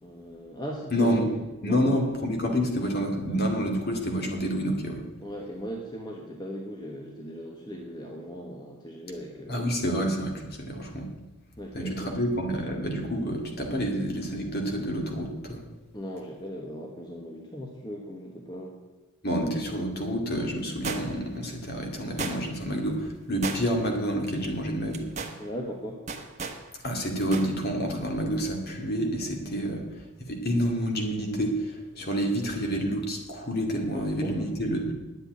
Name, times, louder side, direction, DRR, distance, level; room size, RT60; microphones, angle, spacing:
voice 1, 0.0-2.1 5.2-10.0 11.6-12.2 15.9-18.8 25.4-26.1 32.0-32.1 33.9-34.5, equal, 20° left, 0 dB, 1.2 m, -38 dB
voice 2, 0.9-1.3 1.6-5.0 9.5-11.1 11.7-15.6 19.2-25.1 26.8-29.8 30.3-34.9, equal, 45° left, 2 dB, 2.3 m, -28 dB
three shots and reload, 20.8-21.4 22.2-22.7 23.4-23.9 24.3-24.5 24.9-25.4 26.1-26.6 27.3-27.5 27.8-27.9, right 4 dB, 30° right, 1.2 m, -34 dB
10.0 x 8.0 x 9.4 m, 1.1 s
head